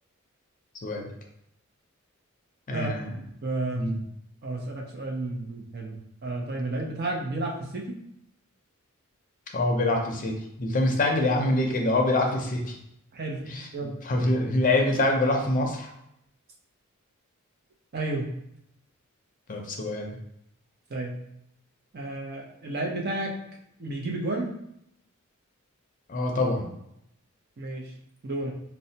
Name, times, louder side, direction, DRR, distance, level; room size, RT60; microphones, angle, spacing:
voice 1, 2.7-3.1 3.7-4.0 9.5-12.8 13.4-13.7 14.0-15.9 19.5-20.2 26.1-26.7, left 2 dB, 40° left, 2 dB, 0.5 m, -25 dB
voice 2, 3.4-3.9 4.4-8.0 13.1-13.5 13.7-14.0 17.9-18.3 20.9-21.2 21.9-23.4 23.8-24.5 27.6-27.9 28.2-28.5, right 2 dB, 50° right, 1 dB, 0.6 m, -31 dB
4.0 x 2.1 x 2.7 m, 0.76 s
head